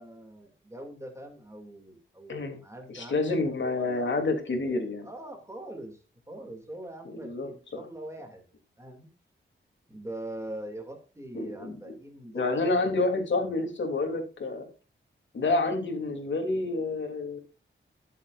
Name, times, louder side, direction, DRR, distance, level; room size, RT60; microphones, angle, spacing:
voice 1, 0.0-4.1 5.0-8.4 8.8-9.1 9.9-13.2, right 1 dB, 15° right, 3 dB, 2.7 m, -43 dB
voice 2, 2.3-2.6 2.9-5.1 7.0-7.8 11.3-11.9 12.3-14.7 15.3-17.4, left 3 dB, 65° left, 3 dB, 3.2 m, -29 dB
21.0 x 7.6 x 2.6 m, 0.33 s
wide cardioid pair, 160°, 21 cm